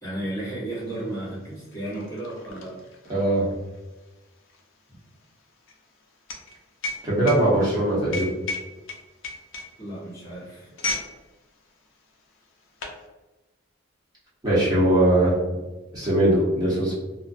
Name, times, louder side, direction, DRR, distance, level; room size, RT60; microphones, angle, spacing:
voice 1, 0.0-2.8 9.8-10.7, right 1 dB, 15° left, -10 dB, 1.1 m, -33 dB
sound 1, 0.8-0.9 1.2-11.1 11.4-11.7 12.4-13.0, left 2 dB, 70° left, 0.4 m, -35 dB
voice 2, 3.1-3.5 7.0-8.3 14.4-15.3 15.9-16.9, right 1 dB, 20° right, -9 dB, 0.9 m, -20 dB
2.4 x 2.1 x 2.5 m, 1.1 s
head